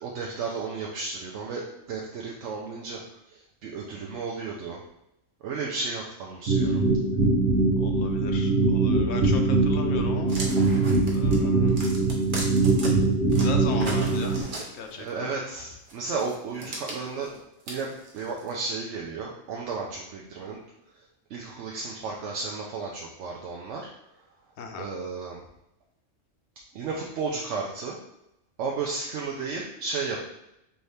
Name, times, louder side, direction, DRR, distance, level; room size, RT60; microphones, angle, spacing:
voice 1, 0.0-3.0 3.3-4.8 5.4-6.8 15.0-17.3 17.7-20.6 21.3-23.9 24.8-25.4 26.7-28.0 28.6-30.2, right 4 dB, 70° right, -2 dB, 0.9 m, -33 dB
sound 1, 6.5-14.4, right 3 dB, 85° right, 1.2 m, -22 dB
voice 2, 7.8-9.4 9.7-10.4 11.1-11.8 13.4-14.3 14.8-15.1 24.6-24.8, left 5 dB, 65° left, 4 dB, 0.9 m, -36 dB
sound 2, 10.3-12.9 13.3-15.1 15.9-18.5, right 2 dB, 45° right, 0.9 m, -37 dB
4.7 x 2.7 x 3.3 m, 0.84 s
omnidirectional pair, 1.3 m